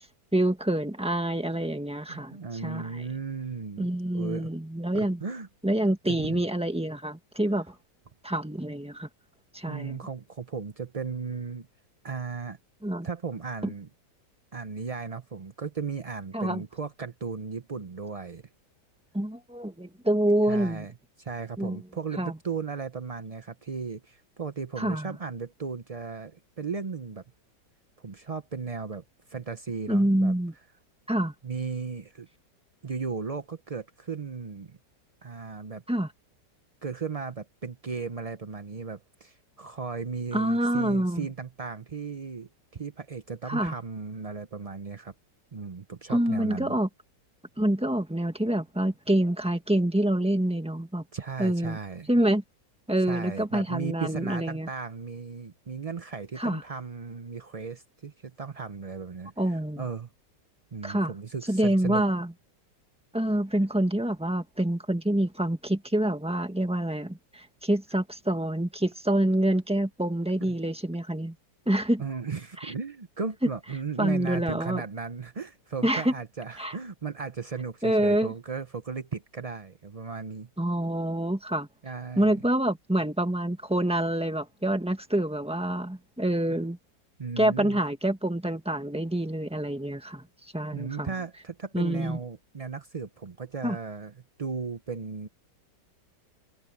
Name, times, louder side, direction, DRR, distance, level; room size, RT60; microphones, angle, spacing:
voice 1, 0.3-3.1 3.8-5.2 5.6-7.7 8.2-9.1 9.5-10.0 12.8-13.1 13.6-13.7 16.3-16.6 19.1-20.9 21.6-21.8 22.2-22.3 24.8-25.1 29.9-30.5 31.1-31.3 35.9-36.1 40.3-41.3 43.4-43.7 46.1-46.9 47.6-51.0 51.4-51.8 52.1-52.4 52.9-54.7 56.4-56.6 59.4-59.8 60.8-61.1 61.5-62.3 63.1-71.3 71.7-72.0 72.6-72.7 74.0-74.8 75.8-76.1 76.6-76.8 77.8-78.3 80.6-81.7 82.2-86.8 87.4-90.2 90.5-91.1 91.7-92.2 93.6-93.8, right 1 dB, 5° right, 1.4 m, -26 dB
voice 2, 2.1-4.5 4.9-5.5 6.1-6.4 9.7-11.7 12.0-12.6 13.0-13.9 14.5-18.4 20.4-27.2 28.0-30.3 31.4-32.3 32.8-34.8 35.2-35.8 36.8-45.1 45.5-46.8 51.1-52.1 53.0-60.1 60.7-62.0 70.4-70.6 72.0-80.5 81.8-82.4 87.2-87.8 90.7-94.1 94.4-95.3, right 5 dB, 55° right, 0.4 m, -36 dB
omnidirectional pair, 1.9 m